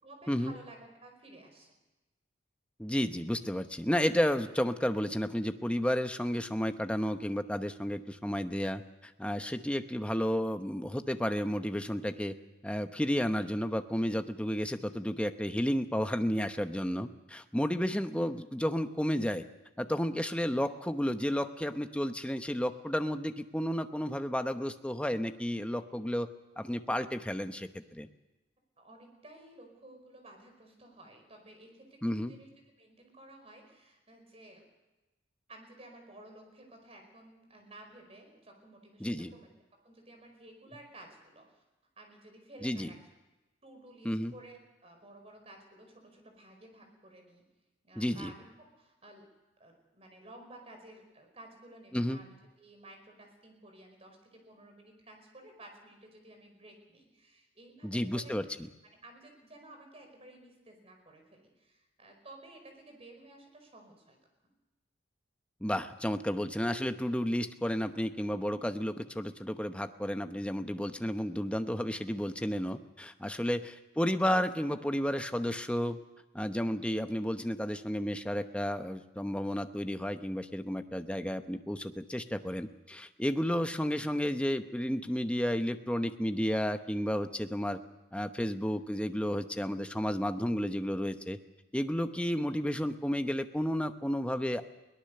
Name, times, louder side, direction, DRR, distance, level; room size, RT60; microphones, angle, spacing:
voice 1, 0.0-1.7 28.8-32.5 32.8-34.6 35.5-39.5 39.8-41.6 42.0-43.0 43.6-47.4 47.8-49.3 49.6-58.4 59.0-64.2, right 1 dB, 30° right, 4 dB, 5.1 m, -54 dB
voice 2, 2.8-12.3 12.6-19.5 19.8-26.3 26.6-28.1 32.0-32.3 39.0-39.3 42.6-42.9 44.0-44.3 48.0-48.3 51.9-52.2 57.8-58.5 65.6-76.0 76.3-87.8 88.1-91.4 91.7-94.6, equal, 5° left, 8 dB, 0.9 m, -32 dB
22.5 x 18.5 x 6.7 m, 1.0 s
head